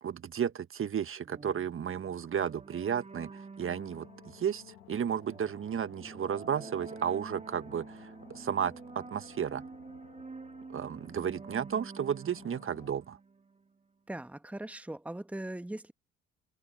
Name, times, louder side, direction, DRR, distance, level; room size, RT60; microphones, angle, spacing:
voice 1, 0.0-9.6 10.7-13.2, right 8 dB, 45° right, 1.5 m, -33 dB
sound 1, 1.2-13.8, right 4 dB, 20° right, 2.8 m, -49 dB
sound 2, 3.6-12.9, left 19 dB, 85° left, 2.6 m, -57 dB
voice 2, 14.1-15.9, right 1 dB, 5° right, 1.4 m, -40 dB
hypercardioid pair, 55°, 30 cm